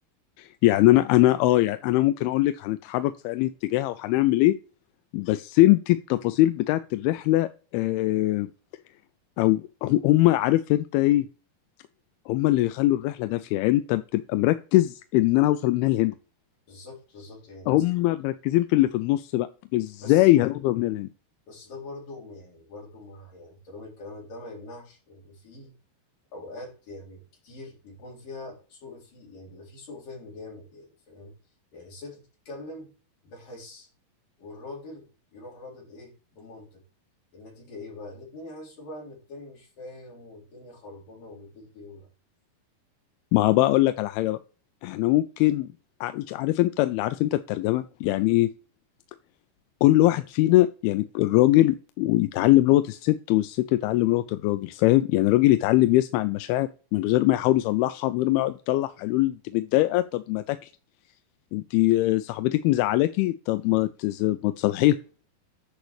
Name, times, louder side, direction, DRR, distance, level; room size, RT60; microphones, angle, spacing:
voice 1, 0.4-4.6 5.1-7.5 7.7-8.5 9.4-11.3 12.3-16.1 17.7-21.1 43.3-44.4 44.8-45.7 46.0-48.5 49.8-60.7 61.5-65.0, left 16 dB, 90° left, 11 dB, 2.5 m, -22 dB
voice 2, 16.7-17.9 20.0-20.3 21.5-25.7 26.3-31.3 31.7-32.9 33.2-33.9 34.4-35.1 35.3-36.8 37.3-42.1, left 2 dB, 60° left, -3 dB, 5.4 m, -43 dB
10.5 x 5.7 x 3.2 m, 0.36 s
omnidirectional pair, 4.4 m